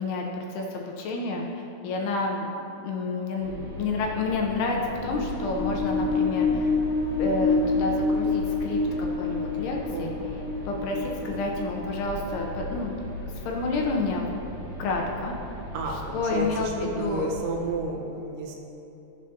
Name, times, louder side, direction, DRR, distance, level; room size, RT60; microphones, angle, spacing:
voice 1, 0.0-2.5 2.8-6.8 7.2-10.1 10.7-13.0 13.5-14.3 14.8-15.4 16.1-17.3, left 3 dB, 80° left, 0 dB, 2.4 m, -29 dB
sound 1, 3.4-17.8, left 1 dB, 65° right, 3.0 m, -38 dB
sound 2, 5.1-12.7, left 3 dB, 50° left, 1.4 m, -27 dB
voice 2, 15.7-18.6, right 2 dB, 80° right, 0 dB, 3.4 m, -31 dB
15.5 x 7.7 x 2.8 m, 2.9 s
omnidirectional pair, 5.3 m